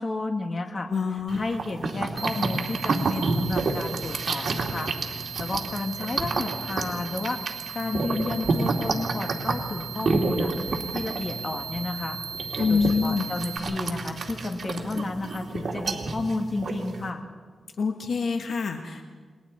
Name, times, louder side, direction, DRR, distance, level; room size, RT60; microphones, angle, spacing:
voice 1, 0.0-0.9 1.3-7.4 7.7-10.5 10.9-12.2 12.6-17.2, left 2 dB, 45° left, 4 dB, 2.3 m, -32 dB
voice 2, 0.9-1.4 12.6-13.3 17.8-19.1, left 5 dB, 75° left, 4 dB, 1.4 m, -26 dB
sound 1, 1.3-17.1, right 3 dB, 60° right, 2.6 m, -29 dB
sound 2, 2.2-13.6, right 7 dB, 40° right, 2.3 m, -38 dB
29.0 x 21.5 x 4.3 m, 1.5 s
cardioid pair, 90°, 0 cm